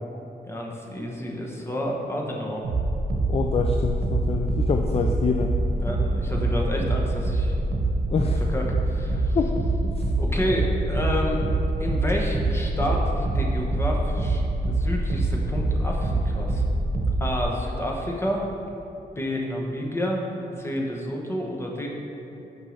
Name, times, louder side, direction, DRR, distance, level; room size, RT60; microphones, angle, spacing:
voice 1, 0.5-2.6 5.7-7.5 8.5-9.4 10.2-11.4 11.8-14.4 14.7-16.6 17.2-18.4 19.1-20.2 20.6-21.9, equal, 15° left, -1 dB, 1.1 m, -29 dB
sound 1, 2.6-17.4, right 2 dB, 70° right, 1.0 m, -25 dB
voice 2, 3.3-5.5 8.1-8.4 9.3-9.5 9.8-10.0, left 5 dB, 35° left, 4 dB, 0.4 m, -26 dB
6.2 x 5.4 x 6.4 m, 2.9 s
wide cardioid pair, 145°, 17 cm